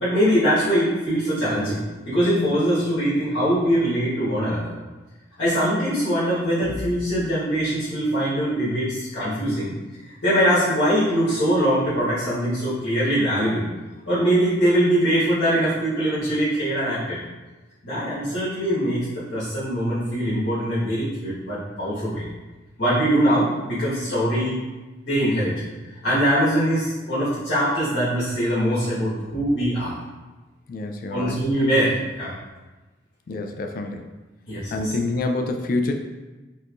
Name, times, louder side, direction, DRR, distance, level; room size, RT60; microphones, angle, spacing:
voice 1, 0.0-4.7 5.4-9.7 10.0-13.6 14.1-17.2 17.8-22.2 22.8-24.6 25.0-25.6 26.0-30.0 31.1-32.3 34.5-34.9, equal, 65° left, -12 dB, 1.3 m, -22 dB
voice 2, 30.7-31.4 33.3-34.1 34.7-36.0, left 2 dB, 50° left, 5 dB, 0.3 m, -26 dB
4.3 x 2.9 x 2.4 m, 1.2 s
head